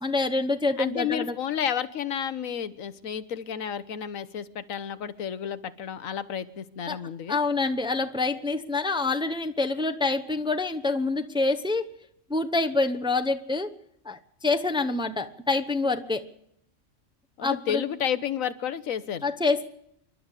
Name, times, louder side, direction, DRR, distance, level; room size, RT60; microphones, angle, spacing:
voice 1, 0.0-1.4 6.9-7.0 7.3-11.9 12.3-13.7 14.0-16.3 17.4-17.8 19.2-19.6, left 3 dB, 5° right, 7 dB, 0.7 m, -26 dB
voice 2, 0.8-7.4 17.4-19.3, left 8 dB, 90° left, 13 dB, 1.4 m, -31 dB
27.0 x 12.0 x 8.2 m, 0.76 s
omnidirectional pair, 1.4 m